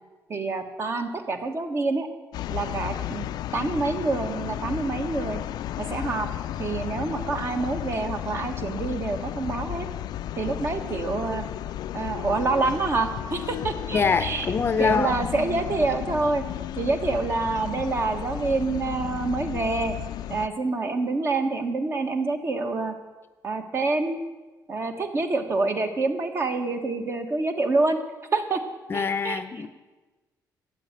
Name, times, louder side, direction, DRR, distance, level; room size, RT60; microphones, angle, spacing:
voice 1, 0.3-2.1 2.5-5.4 5.8-6.3 6.6-9.9 10.4-11.4 11.9-14.5 14.8-16.4 16.8-19.9 20.3-22.9 23.4-24.2 24.7-28.0 28.3-28.6 28.9-29.4, right 3 dB, 35° right, 6 dB, 1.4 m, -27 dB
sound 1, 2.3-20.5, left 12 dB, 85° left, 0.4 m, -33 dB
voice 2, 13.9-15.2 28.9-29.7, left 5 dB, 35° left, 12 dB, 0.6 m, -24 dB
13.5 x 8.2 x 9.0 m, 1.2 s
cardioid pair, 150°, 7 cm